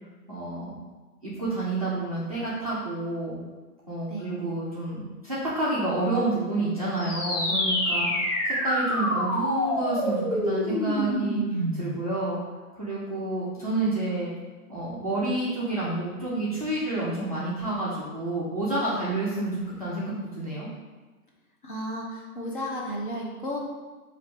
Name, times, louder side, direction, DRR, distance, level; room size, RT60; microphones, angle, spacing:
voice 1, 0.3-0.8 1.2-3.4 3.9-12.4 12.8-14.3 14.7-20.7, right 2 dB, 25° right, -9 dB, 0.4 m, -29 dB
voice 2, 4.1-4.4 21.6-23.7, equal, 35° left, -2 dB, 0.6 m, -33 dB
sound 1, 7.0-12.0, equal, 55° left, 1.4 m, -27 dB
4.4 x 2.5 x 3.3 m, 1.3 s
hypercardioid pair, 155°, 46 cm